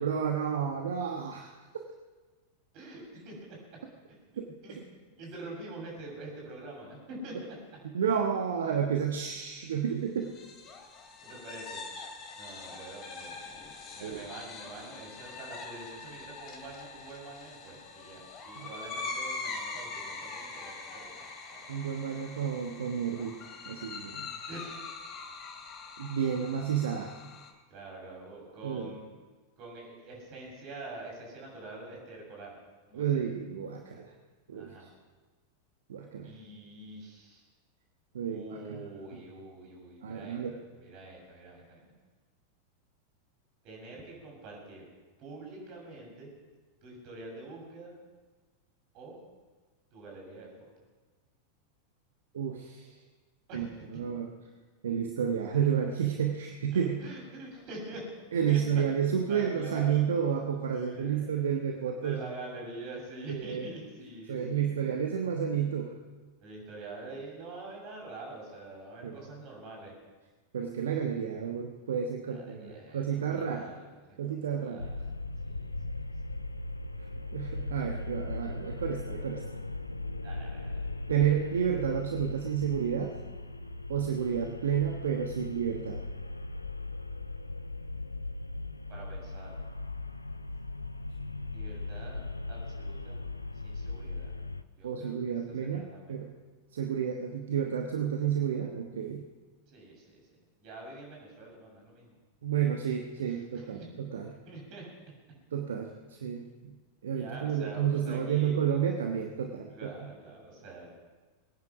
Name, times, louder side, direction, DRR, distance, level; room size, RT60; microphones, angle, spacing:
voice 1, 0.0-1.5 7.9-10.2 14.0-14.2 21.7-24.3 26.0-27.1 28.6-28.9 32.9-34.1 34.5-34.7 35.9-36.3 38.1-38.4 38.7-38.8 40.0-40.6 52.3-52.9 53.5-53.7 53.9-54.3 54.8-57.0 58.3-62.2 63.3-63.7 64.3-65.9 69.0-69.2 70.5-73.7 74.2-74.9 77.3-79.4 81.1-83.1 83.9-86.0 94.8-96.3 96.7-99.2 102.4-104.3 105.5-106.5 107.0-109.7, right 8 dB, 65° right, 3 dB, 1.2 m, -30 dB
voice 2, 2.7-3.3 4.1-4.2 4.6-4.7 5.2-7.6 9.9-10.0 11.2-11.8 12.3-13.4 13.9-22.3 24.5-24.9 27.7-29.1 29.6-32.6 32.9-33.0 34.5-34.9 36.2-37.4 38.2-41.9 43.6-44.8 45.2-46.3 46.8-47.9 48.9-49.2 49.9-50.7 53.5-53.7 56.7-58.0 58.5-58.8 59.3-60.0 60.7-61.2 62.0-65.1 66.4-69.9 72.2-75.1 80.2-80.8 88.9-89.5 91.5-92.2 92.5-93.2 93.6-94.3 94.8-95.1 95.6-96.1 99.7-100.2 100.6-102.1 103.2-103.8 104.4-104.8 107.1-108.6 109.7-110.9, right 2 dB, 40° right, -1 dB, 7.0 m, -46 dB
sound 1, 10.2-27.5, left 4 dB, 35° left, 2.4 m, -43 dB
sound 2, 74.8-94.6, left 2 dB, 85° left, 0.6 m, -38 dB
22.5 x 9.8 x 6.1 m, 1.3 s
figure-of-eight pair, 90°, 0 cm